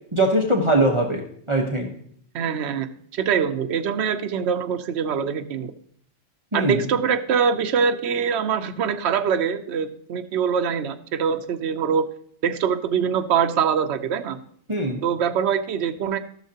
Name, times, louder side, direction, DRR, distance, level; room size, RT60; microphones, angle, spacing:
voice 1, 0.1-1.2 1.5-1.9 6.5-6.8 14.7-15.0, right 1 dB, 25° right, 0 dB, 1.0 m, -21 dB
voice 2, 2.3-5.7 6.5-12.0 12.4-14.4 15.0-16.2, right 7 dB, 65° right, 8 dB, 0.9 m, -23 dB
14.5 x 6.4 x 2.8 m, 0.63 s
omnidirectional pair, 1.3 m